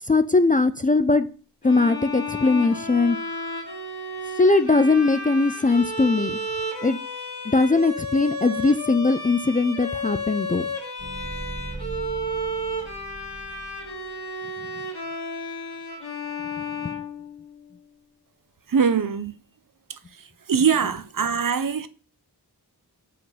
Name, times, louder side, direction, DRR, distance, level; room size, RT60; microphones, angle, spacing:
voice 1, 0.1-1.3 1.6-3.2 4.4-6.4 6.8-7.0 7.5-10.7 16.8-16.9, left 3 dB, 20° left, 0.3 m, -20 dB
Bowed string instrument, 1.6-17.7, left 1 dB, 70° left, 2.1 m, -32 dB
sound 1, 11.0-14.1, right 2 dB, 35° right, 0.9 m, -39 dB
voice 2, 18.7-19.3 19.9-20.0 20.5-21.9, right 6 dB, 55° right, 0.6 m, -22 dB
5.4 x 3.8 x 5.6 m
wide cardioid pair, 50°, 41 cm